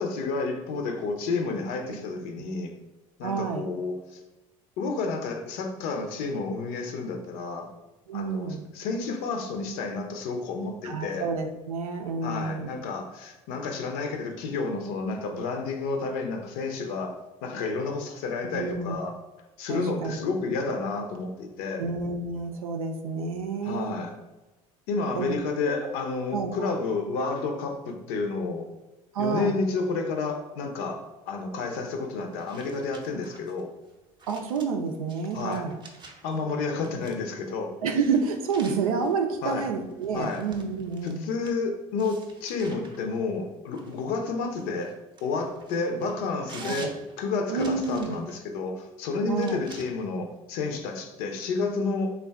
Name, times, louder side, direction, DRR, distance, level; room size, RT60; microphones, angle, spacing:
voice 1, 0.0-2.7 3.2-4.2 4.8-7.7 8.1-11.3 12.2-17.1 17.4-19.2 19.6-21.9 23.6-24.1 24.9-28.7 29.2-33.7 35.3-35.7 36.2-37.7 39.4-39.7 40.1-40.4 41.0-45.0 45.2-52.1, left 4 dB, 60° left, 5 dB, 0.6 m, -30 dB
voice 2, 3.2-3.7 8.1-8.6 10.8-12.7 18.5-18.9 19.7-20.2 20.6-20.7 21.8-23.9 25.2-25.4 25.6-25.9 26.3-26.7 29.1-29.5 34.3-35.8 37.8-41.2 46.6-46.8 47.5-48.2 49.3-49.6, right 5 dB, 80° right, 5 dB, 0.5 m, -29 dB
sound 1, 32.3-36.4 36.8-37.4 37.9-41.6 42.0-43.0 43.7-48.5 49.3-49.8, right 3 dB, 25° right, 0.7 m, -49 dB
3.7 x 2.3 x 3.4 m, 1.1 s
figure-of-eight pair, 60°, 18 cm